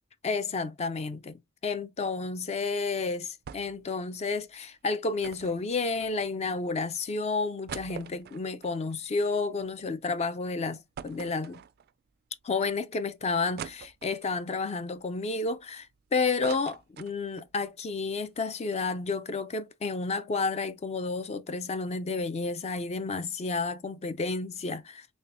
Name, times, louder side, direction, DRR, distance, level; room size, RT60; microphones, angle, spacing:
voice 1, 0.2-11.6 12.4-25.1, left 4 dB, 30° left, 0.4 m, -31 dB
sound 1, 3.5-3.9 4.2-4.3 5.2-6.5 7.0-7.1 7.4-9.9 10.3-10.4 11.0-12.1 12.6-12.7 13.6-14.4 15.0-15.9 16.2-17.5 17.9-18.0 18.2-18.5, right 8 dB, 50° right, 0.3 m, -44 dB
4.3 x 3.4 x 2.5 m
head